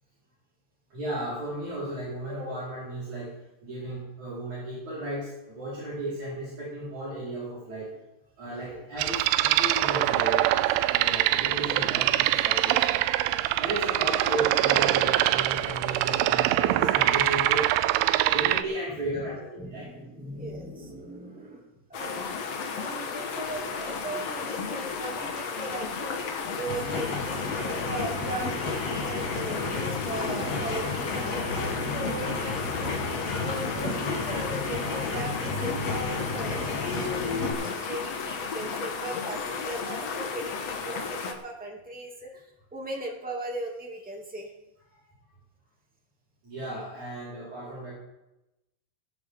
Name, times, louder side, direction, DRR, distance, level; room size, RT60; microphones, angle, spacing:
voice 1, 0.9-3.3 3.6-7.9 8.4-19.9 32.1-32.2 46.4-47.9, right 1 dB, 45° right, -9 dB, 6.1 m, -35 dB
sound 1, 9.0-18.6, right 15 dB, 80° right, 2.3 m, -24 dB
voice 2, 18.9-19.3 19.6-22.3 22.7-42.4 42.7-44.5, right 1 dB, 5° right, -1 dB, 1.5 m, -38 dB
sound 2, 21.9-41.3, left 5 dB, 60° left, 1.7 m, -34 dB
sound 3, 26.5-37.5, left 3 dB, 40° left, 3.9 m, -32 dB
19.5 x 10.5 x 3.8 m, 0.92 s
omnidirectional pair, 4.7 m